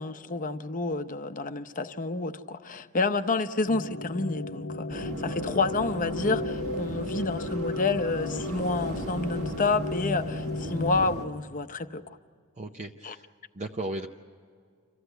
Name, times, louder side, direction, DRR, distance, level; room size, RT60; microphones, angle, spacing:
voice 1, 0.0-12.0 13.0-13.1, left 3 dB, 40° left, 9 dB, 0.8 m, -29 dB
sound 1, 3.7-11.1, left 2 dB, 65° left, 0.9 m, -34 dB
sound 2, 4.9-11.2, right 1 dB, 65° right, 1.8 m, -38 dB
voice 2, 12.6-13.3 13.5-14.1, right 2 dB, 30° right, 2 dB, 0.7 m, -35 dB
27.0 x 15.0 x 8.0 m, 2.1 s
head